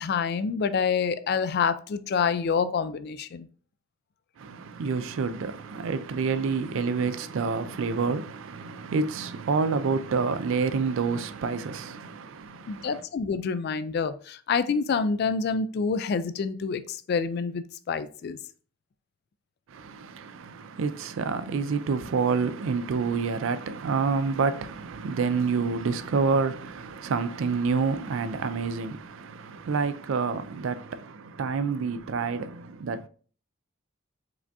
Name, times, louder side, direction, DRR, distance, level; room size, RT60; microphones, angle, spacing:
voice 1, 0.0-3.5 12.7-18.4, left 5 dB, 50° left, 0.3 m, -27 dB
voice 2, 4.4-13.0 19.7-33.1, right 5 dB, 60° right, 0.4 m, -28 dB
4.8 x 3.4 x 2.6 m
head